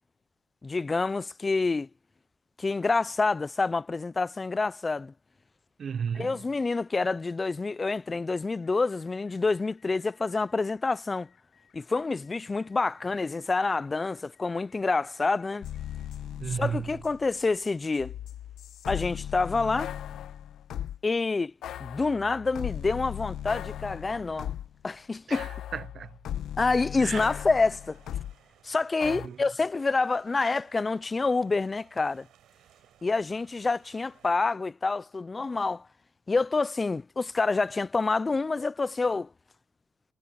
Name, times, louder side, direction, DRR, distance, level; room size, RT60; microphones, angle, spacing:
voice 1, 0.6-1.9 2.6-5.1 6.2-11.3 11.7-15.7 16.5-18.1 18.9-19.9 21.0-21.5 21.8-24.5 24.8-25.5 26.6-28.0 28.6-32.3 33.0-35.8 36.3-39.3, left 3 dB, 25° left, 0.4 m, -27 dB
voice 2, 5.8-6.4 16.4-16.9 25.3-26.2 27.0-27.2 29.0-29.4, right 7 dB, 50° right, 0.5 m, -34 dB
sound 1, 8.6-16.1, left 8 dB, 60° left, 6.9 m, -65 dB
sound 2, 15.6-17.4 17.7-21.0 21.6-24.8 25.3-28.3 29.0-29.3, left 11 dB, 75° left, 1.2 m, -37 dB
sound 3, 26.8-34.3, right 12 dB, 80° right, 5.7 m, -61 dB
cardioid pair, 90°, 0 cm